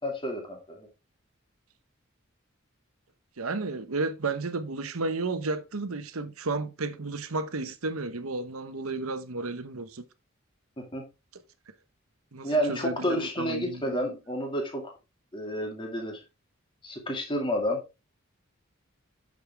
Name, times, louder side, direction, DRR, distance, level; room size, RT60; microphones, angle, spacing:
voice 1, 0.0-0.9 10.8-11.0 12.4-14.9 15.3-16.2 16.8-17.8, equal, 25° left, 2.2 m, -30 dB
voice 2, 3.4-10.0 12.3-14.0, right 3 dB, 85° right, 1.0 m, -32 dB
8.3 x 6.6 x 3.4 m
head